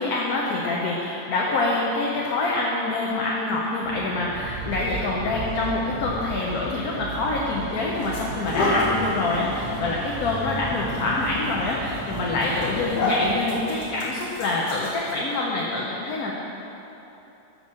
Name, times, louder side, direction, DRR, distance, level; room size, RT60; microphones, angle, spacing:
voice 1, 0.0-16.3, left 2 dB, 70° left, -4 dB, 1.3 m, -26 dB
sound 1, 3.8-12.9, right 3 dB, 65° right, 2.5 m, -36 dB
sound 2, 7.2-7.4 7.9-15.3, left 1 dB, 85° left, 2.1 m, -30 dB
10.5 x 3.6 x 7.3 m, 3.0 s
omnidirectional pair, 1.7 m